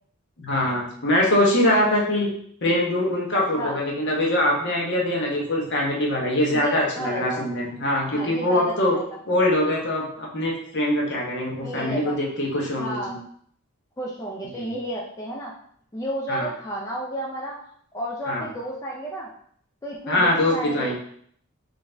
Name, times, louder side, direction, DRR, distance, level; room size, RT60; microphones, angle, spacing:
voice 1, 0.4-2.3 2.6-9.0 9.3-13.2 14.5-14.6 16.3-16.5 18.3-18.4 20.1-20.9, left 1 dB, 55° left, -2 dB, 1.0 m, -23 dB
voice 2, 6.5-7.4 8.1-9.0 11.6-12.2 12.8-13.1 14.0-15.5 15.9-17.6 17.9-19.3 19.8-20.9, right 1 dB, 15° left, -3 dB, 0.4 m, -31 dB
3.9 x 2.6 x 3.4 m, 0.64 s
head